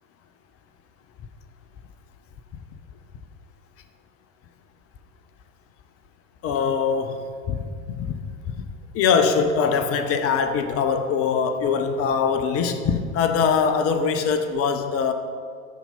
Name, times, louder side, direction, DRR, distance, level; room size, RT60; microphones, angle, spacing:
voice 1, 6.4-8.2 8.9-15.1, left 6 dB, 35° left, 8 dB, 0.8 m, -22 dB
13.0 x 4.5 x 5.4 m, 2.1 s
figure-of-eight pair, 80°, 41 cm